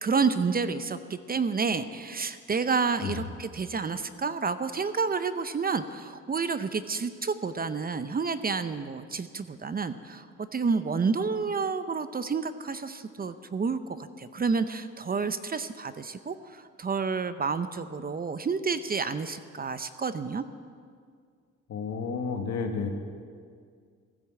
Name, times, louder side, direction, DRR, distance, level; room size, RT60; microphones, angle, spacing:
voice 1, 0.0-10.3 10.5-20.4, right 5 dB, 30° right, 12 dB, 0.7 m, -29 dB
voice 2, 21.7-22.9, left 5 dB, 60° left, 4 dB, 1.9 m, -31 dB
15.0 x 10.5 x 7.6 m, 2.1 s
cardioid pair, 90°, 30 cm